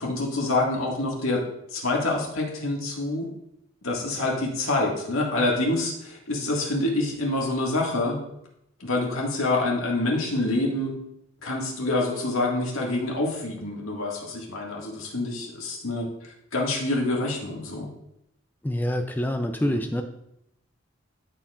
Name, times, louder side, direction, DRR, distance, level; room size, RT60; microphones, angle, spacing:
voice 1, 0.0-1.4 1.7-3.3 3.8-8.2 8.8-10.9 11.4-16.1 16.5-17.9 19.6-19.8, left 2 dB, 80° left, -1 dB, 1.9 m, -26 dB
voice 2, 18.6-20.0, left 1 dB, 10° left, 5 dB, 0.4 m, -26 dB
13.5 x 4.6 x 2.5 m, 0.78 s
head